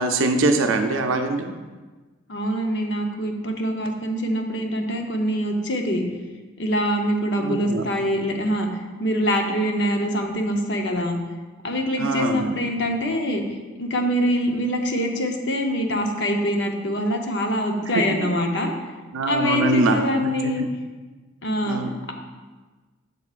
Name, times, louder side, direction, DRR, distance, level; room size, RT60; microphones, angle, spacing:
voice 1, 0.0-1.5 7.4-7.9 12.0-12.5 17.9-18.0 19.1-20.7 21.6-21.9, right 2 dB, 80° right, 5 dB, 0.5 m, -23 dB
voice 2, 2.3-6.0 6.6-11.2 11.6-13.4 13.8-18.7 19.3-20.6 21.4-21.8, equal, 60° left, 3 dB, 0.8 m, -24 dB
8.1 x 6.8 x 2.5 m, 1.3 s
head